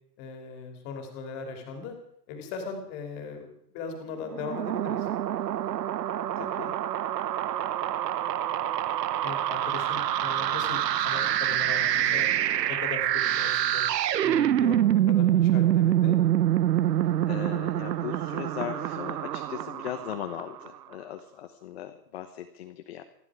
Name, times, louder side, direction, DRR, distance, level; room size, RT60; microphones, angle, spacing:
voice 1, 0.2-2.0 2.3-5.1 9.2-12.3 12.7-13.9 14.2-14.8 15.1-16.1, left 5 dB, 20° left, 4 dB, 2.7 m, -38 dB
sound 1, 4.3-20.7, right 12 dB, 80° right, 1.1 m, -26 dB
voice 2, 6.3-6.7 17.3-23.0, left 11 dB, 40° left, 6 dB, 1.1 m, -38 dB
27.5 x 10.5 x 4.8 m, 0.74 s
hypercardioid pair, 175°, 49 cm